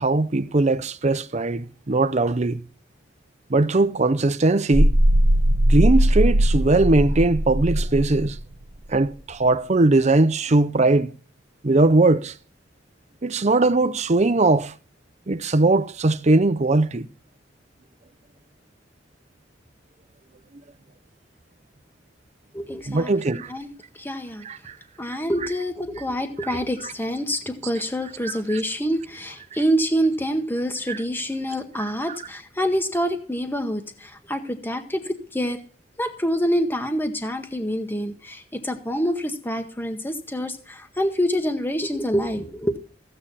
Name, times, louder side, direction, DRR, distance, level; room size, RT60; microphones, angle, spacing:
voice 1, 0.0-2.6 3.5-4.9 5.7-8.4 8.9-11.1 11.6-12.3 13.2-14.7 15.3-17.1 22.9-23.5 24.4-24.7 26.4-26.6 28.5-28.6 30.9-31.0, right 2 dB, 40° right, 0.7 m, -20 dB
sound 1, 4.7-8.4, equal, 55° right, 1.1 m, -19 dB
voice 2, 22.5-23.1 23.5-23.7 24.0-24.5 25.0-35.6 36.0-42.7, equal, 10° left, 1.6 m, -26 dB
15.0 x 8.9 x 4.1 m
head